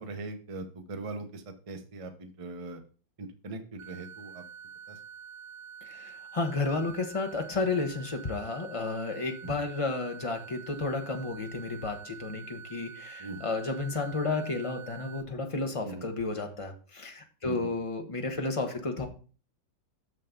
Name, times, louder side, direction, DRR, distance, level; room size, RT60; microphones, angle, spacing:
voice 1, 0.0-2.8 3.2-4.4 4.9-5.0 9.4-9.6 13.2-13.4 15.8-16.1 17.4-17.7, right 3 dB, 55° right, 6 dB, 0.3 m, -40 dB
sound 1, 3.8-15.2, right 7 dB, 75° right, 1.7 m, -47 dB
voice 2, 5.8-19.1, left 3 dB, 35° left, 4 dB, 0.5 m, -32 dB
6.7 x 6.5 x 3.6 m, 0.38 s
omnidirectional pair, 2.0 m